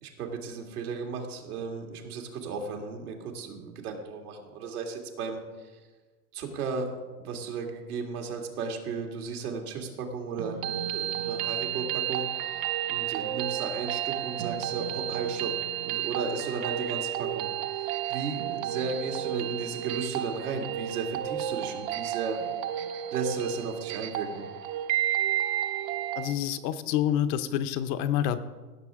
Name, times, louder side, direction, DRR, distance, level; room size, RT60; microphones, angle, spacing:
voice 1, 0.0-5.4 6.3-6.9 7.2-15.5 15.8-22.4 23.1-24.4, right 5 dB, 75° right, 2 dB, 2.2 m, -35 dB
sound 1, 10.4-26.4, right 11 dB, 50° right, 0.9 m, -32 dB
voice 2, 26.2-28.5, left 10 dB, 45° left, 11 dB, 0.6 m, -27 dB
16.5 x 6.7 x 3.6 m, 1.3 s
hypercardioid pair, 110°, 45 cm